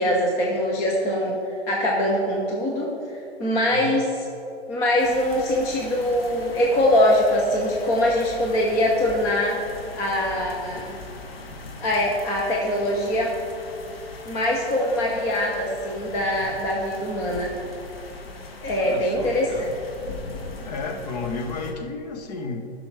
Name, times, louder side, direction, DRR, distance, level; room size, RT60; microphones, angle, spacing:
voice 1, 0.0-1.4 1.7-2.9 3.4-4.2 4.7-9.6 9.9-10.9 11.8-13.4 14.2-17.6 18.6-19.5, left 1 dB, 10° left, -2 dB, 0.4 m, -23 dB
voice 2, 3.7-4.0 18.8-19.7 20.6-22.7, left 3 dB, 40° left, 5 dB, 1.0 m, -33 dB
sound 1, 5.0-21.7, left 3 dB, 65° left, 1.4 m, -40 dB
14.5 x 6.1 x 3.3 m, 2.6 s
hypercardioid pair, 140°, 33 cm